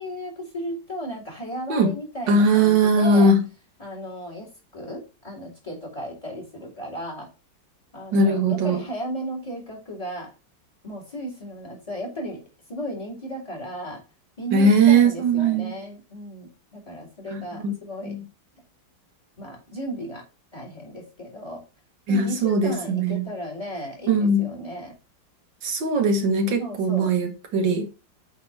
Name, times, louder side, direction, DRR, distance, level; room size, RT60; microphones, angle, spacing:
voice 1, 0.0-3.3 3.8-7.3 7.9-10.3 10.8-12.4 12.7-14.0 14.4-18.2 19.4-20.2 20.5-21.6 22.1-24.9 26.6-27.1, equal, 20° left, 2.7 m, -35 dB
voice 2, 2.3-3.4 8.1-8.8 14.5-15.8 17.3-17.7 18.0-18.2 22.1-23.3 24.1-24.5 25.6-27.9, right 2 dB, 85° right, 2.0 m, -20 dB
8.4 x 3.7 x 4.5 m
omnidirectional pair, 1.9 m